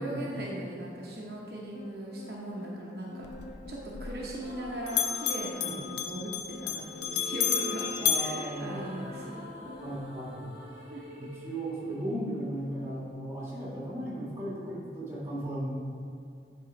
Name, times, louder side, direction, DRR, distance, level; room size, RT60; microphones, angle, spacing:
voice 1, 0.0-3.3 3.7-9.4 10.9-11.0, right 1 dB, 60° right, -4 dB, 0.9 m, -39 dB
sound 1, 1.7-10.4, left 2 dB, 40° left, 1.3 m, -48 dB
Bell, 3.2-4.6 4.9-9.4, left 9 dB, 75° left, 0.5 m, -32 dB
sound 2, 4.3-6.1 6.8-12.9, equal, 35° right, 1.5 m, -46 dB
voice 2, 8.0-8.9 9.8-10.5 11.2-15.8, right 1 dB, 15° right, -7 dB, 1.8 m, -36 dB
8.7 x 3.7 x 5.2 m, 2.4 s
head